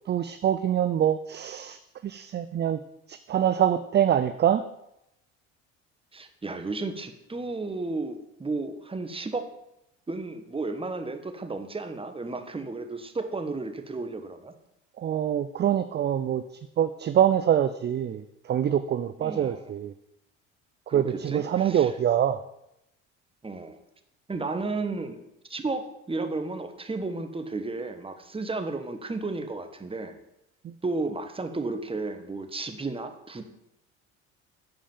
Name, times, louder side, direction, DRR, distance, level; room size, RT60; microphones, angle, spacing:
voice 1, 0.1-2.8 3.1-4.6 15.0-16.4 16.8-19.9 20.9-22.4 30.6-30.7, right 10 dB, 30° right, 11 dB, 0.4 m, -25 dB
voice 2, 6.1-9.5 10.1-14.5 19.2-19.6 20.9-21.9 23.4-23.8 24.3-25.2 25.5-30.1 30.8-33.4, right 3 dB, 15° right, 7 dB, 1.2 m, -33 dB
7.8 x 5.1 x 7.0 m, 0.83 s
supercardioid pair, 75°, 35 cm